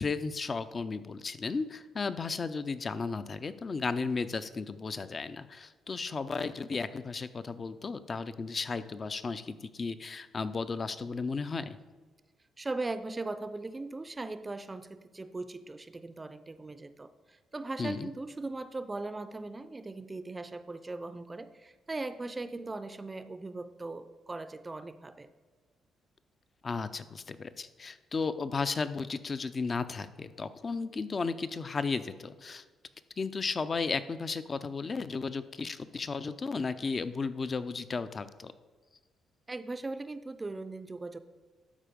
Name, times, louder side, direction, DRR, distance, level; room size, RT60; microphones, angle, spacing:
voice 1, 0.0-11.8 17.8-18.1 26.6-32.6 33.2-38.5, left 4 dB, 35° left, 13 dB, 0.5 m, -34 dB
voice 2, 12.6-25.3 39.5-41.2, right 2 dB, 20° right, 12 dB, 0.5 m, -39 dB
12.5 x 4.5 x 5.1 m, 1.4 s
cardioid pair, 90°, 0 cm